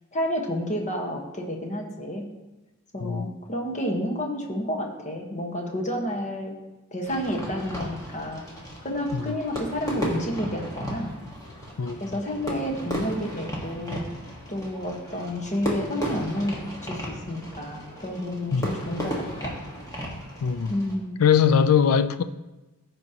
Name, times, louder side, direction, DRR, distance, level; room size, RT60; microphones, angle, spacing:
voice 1, 0.1-2.3 2.9-6.6 6.9-8.4 8.8-11.1 12.0-14.1 14.5-19.6 20.7-21.2, equal, 35° left, 1.2 m, -30 dB
Fireworks, 7.1-21.0, equal, 15° left, 1.4 m, -35 dB
voice 2, 20.4-20.7 21.2-22.2, left 7 dB, 75° left, 0.4 m, -21 dB
15.0 x 5.2 x 2.9 m
head